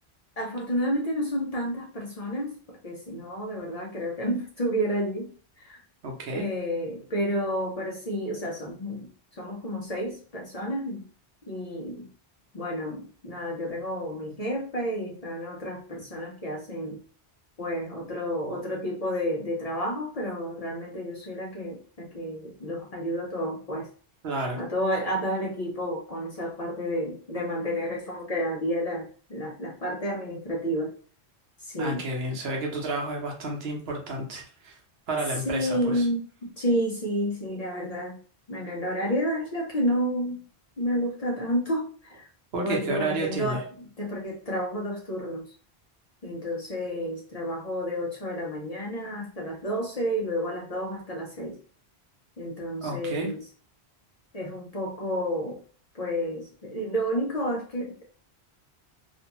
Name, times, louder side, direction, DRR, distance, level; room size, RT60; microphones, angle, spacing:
voice 1, 0.4-5.3 5.6-5.8 6.3-11.0 11.5-12.1 12.5-17.0 17.6-23.9 24.6-31.0 31.6-32.1 35.5-38.2 38.5-40.4 40.8-42.3 42.6-45.5 46.2-51.6 52.4-53.4 54.3-55.6 55.9-58.0, equal, 45° left, -2 dB, 0.6 m, -30 dB
voice 2, 6.0-6.5 24.2-24.6 31.8-34.8 35.1-36.0 42.5-43.6 52.8-53.3, right 2 dB, 70° right, 1 dB, 1.0 m, -31 dB
2.6 x 2.2 x 2.8 m, 0.41 s
omnidirectional pair, 1.1 m